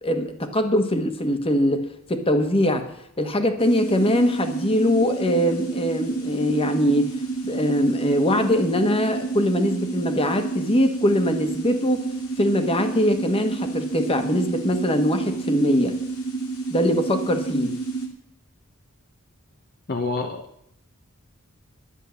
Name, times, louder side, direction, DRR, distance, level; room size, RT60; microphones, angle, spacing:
voice 1, 0.0-2.9 3.2-7.1 7.4-12.1 12.4-16.0 16.7-17.8, equal, 25° left, 7 dB, 1.4 m, -22 dB
sound 1, 3.6-18.1, right 3 dB, 90° left, 2.6 m, -30 dB
voice 2, 19.9-20.7, left 3 dB, 45° left, 4 dB, 1.0 m, -28 dB
11.5 x 10.0 x 7.0 m, 0.73 s
head